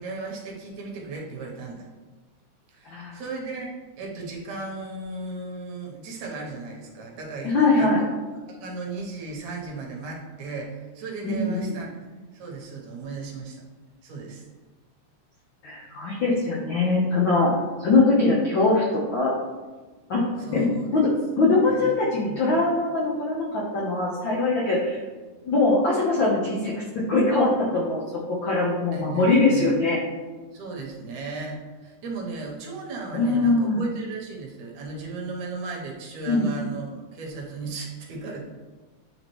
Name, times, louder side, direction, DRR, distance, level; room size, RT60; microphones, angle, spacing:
voice 1, 0.0-1.9 2.7-7.9 8.5-12.0 12.3-13.6 14.0-14.4 20.4-21.1 21.4-21.9 22.3-22.4 28.9-29.7 30.5-38.4, right 3 dB, 70° right, -1 dB, 2.2 m, -36 dB
voice 2, 7.4-8.0 11.2-11.8 15.6-17.5 17.8-19.3 20.1-20.2 20.5-20.7 20.9-21.1 21.4-25.0 25.4-26.7 27.1-28.0 28.3-30.0 33.1-33.8 36.3-36.5, left 3 dB, 70° left, -4 dB, 1.1 m, -22 dB
10.0 x 3.6 x 3.0 m, 1.3 s
omnidirectional pair, 3.5 m